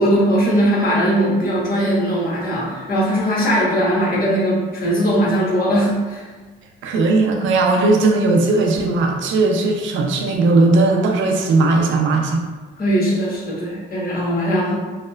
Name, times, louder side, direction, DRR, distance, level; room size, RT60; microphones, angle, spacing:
voice 1, 0.0-6.2 12.8-14.8, equal, 50° left, -6 dB, 1.0 m, -19 dB
voice 2, 6.8-12.4, right 3 dB, 80° right, 2 dB, 0.4 m, -17 dB
3.1 x 2.0 x 2.2 m, 1.3 s
cardioid pair, 90°, 20 cm